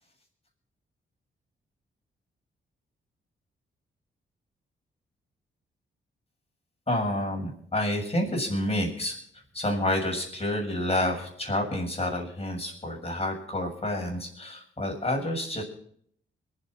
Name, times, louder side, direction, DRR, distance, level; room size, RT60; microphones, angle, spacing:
voice 1, 6.9-9.1 9.5-15.6, left 1 dB, 30° left, 1 dB, 7.2 m, -29 dB
21.5 x 8.2 x 6.1 m, 0.63 s
supercardioid pair, 55°, 21 cm